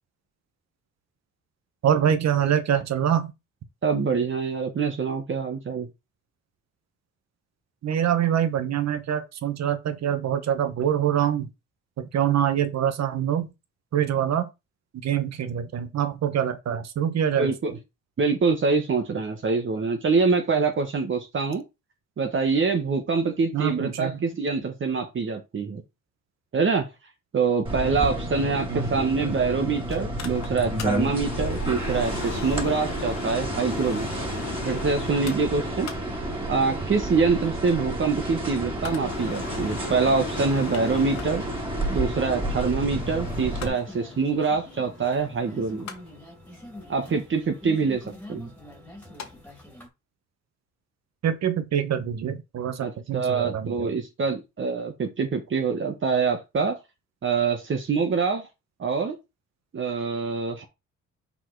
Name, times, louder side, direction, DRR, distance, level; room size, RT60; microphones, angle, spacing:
voice 1, 1.8-3.3 7.8-11.5 12.0-13.5 13.9-14.5 15.0-17.8 23.5-24.1 28.0-28.1 28.7-28.9 51.2-53.9, right 9 dB, 60° right, 1.3 m, -25 dB
voice 2, 3.8-5.9 17.4-17.8 18.2-21.6 22.2-25.8 26.5-26.9 27.3-34.3 34.6-35.9 36.5-41.4 41.9-45.9 46.9-48.5 52.8-56.8 57.2-58.5 58.8-59.2 59.7-60.6, right 4 dB, 40° right, 1.2 m, -25 dB
sound 1, 27.6-43.7, right 1 dB, 15° right, 3.2 m, -31 dB
Mechanical fan, 29.9-49.3 49.6-49.7, left 7 dB, 65° left, 1.6 m, -40 dB
sound 2, 43.0-49.9, left 1 dB, 5° left, 2.3 m, -44 dB
5.8 x 4.2 x 4.7 m
cardioid pair, 90°, 30 cm